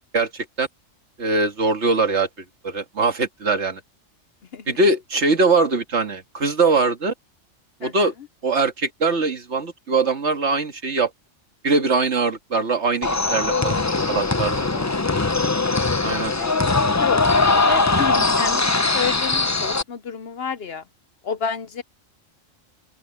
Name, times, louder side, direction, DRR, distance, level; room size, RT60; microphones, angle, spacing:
voice 1, 0.1-0.7 1.2-2.3 2.6-3.8 4.7-7.1 7.8-8.1 8.4-11.1 11.6-13.8 14.1-14.6 16.0-16.3, right 3 dB, 60° right, 2.1 m, -21 dB
sound 1, 13.0-19.8, left 3 dB, 20° left, 0.4 m, -21 dB
voice 2, 14.7-15.2 16.2-16.6 17.0-20.8 21.2-21.8, left 6 dB, 55° left, 0.9 m, -30 dB
open air
omnidirectional pair, 1.3 m